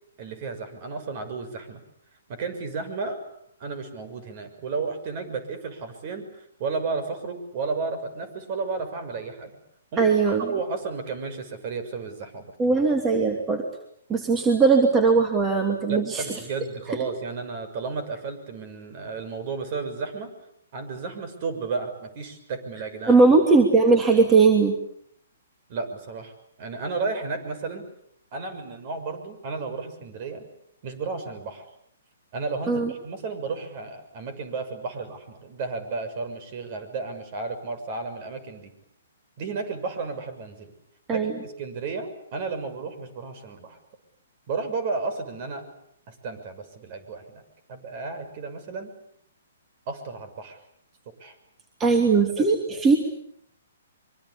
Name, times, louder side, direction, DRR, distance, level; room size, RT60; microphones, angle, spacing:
voice 1, 0.2-1.8 2.3-3.2 3.6-9.6 9.9-10.1 10.5-12.5 15.9-20.3 20.7-23.2 25.7-26.3 26.6-27.9 28.3-30.4 30.8-31.6 32.3-38.7 39.4-40.7 41.1-43.8 44.5-45.7 46.1-47.4 47.7-48.9 49.9-50.6 51.2-51.3 52.4-52.8, right 4 dB, 40° right, 10 dB, 6.4 m, -33 dB
voice 2, 10.0-10.5 12.6-13.6 14.1-16.2 23.1-24.7 32.7-32.9 41.1-41.3 51.8-53.0, right 4 dB, 15° right, 4 dB, 2.9 m, -19 dB
24.5 x 24.5 x 8.6 m, 0.70 s
hypercardioid pair, 140°, 0 cm